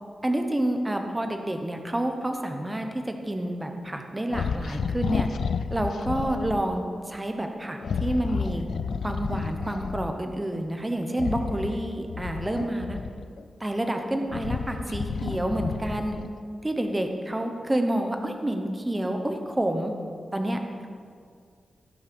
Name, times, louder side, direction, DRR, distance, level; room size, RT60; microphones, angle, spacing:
voice 1, 0.2-5.3 5.7-8.7 9.0-13.0 13.6-16.1 16.6-19.9 20.3-20.9, right 1 dB, 15° right, 4 dB, 0.9 m, -29 dB
sound 1, 4.3-6.7 7.8-10.2 11.1-13.4 14.0-16.4, left 6 dB, 75° left, 0.4 m, -31 dB
17.0 x 6.2 x 5.4 m, 2.2 s
wide cardioid pair, 180°, 0 cm